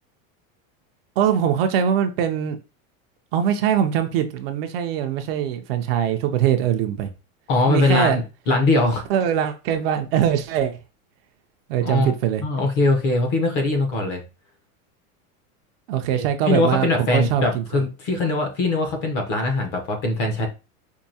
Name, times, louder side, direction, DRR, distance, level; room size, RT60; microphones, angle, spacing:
voice 1, 1.2-2.6 3.3-7.1 7.7-8.2 9.1-10.8 11.7-12.4 15.9-16.9 17.1-17.6, right 9 dB, 50° right, 0.5 m, -22 dB
voice 2, 7.5-9.0 11.8-12.1 12.4-14.2 16.1-20.5, left 2 dB, 25° left, 0.6 m, -21 dB
4.5 x 2.6 x 2.7 m
supercardioid pair, 175°, 40 cm